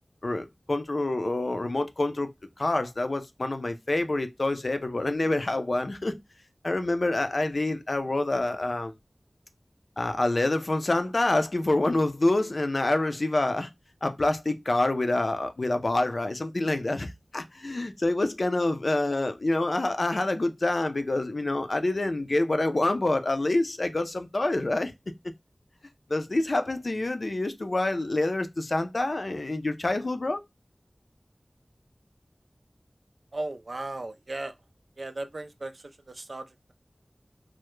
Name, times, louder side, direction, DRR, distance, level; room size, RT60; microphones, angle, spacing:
voice 1, 0.2-2.3 2.6-6.1 6.6-8.9 10.0-13.7 14.0-24.9 26.1-30.4, left 2 dB, 65° left, 0.4 m, -27 dB
voice 2, 33.3-34.6 35.0-36.7, right 2 dB, 85° right, 0.3 m, -36 dB
2.2 x 2.0 x 3.0 m
wide cardioid pair, 55°, 0 cm